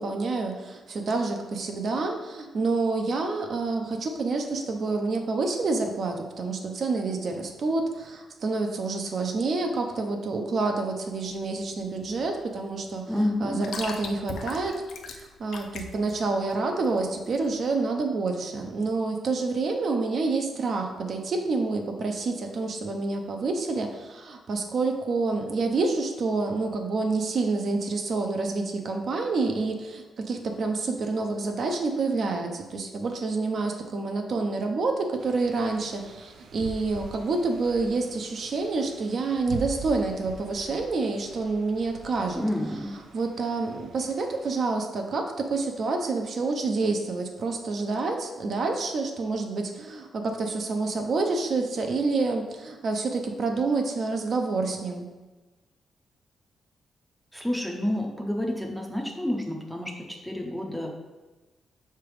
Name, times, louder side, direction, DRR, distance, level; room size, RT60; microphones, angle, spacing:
voice 1, 0.0-13.1 13.4-14.8 15.4-42.4 43.1-55.1, right 3 dB, 45° right, 3 dB, 0.6 m, -28 dB
sound 1, 11.1-17.8, left 4 dB, 70° left, 0.6 m, -41 dB
voice 2, 13.1-13.7 42.4-43.0 57.3-60.9, left 1 dB, ahead, 1 dB, 0.6 m, -29 dB
sound 2, 35.2-44.6, right 3 dB, 90° right, 0.6 m, -44 dB
5.9 x 3.4 x 4.7 m, 1.2 s
wide cardioid pair, 165°, 0 cm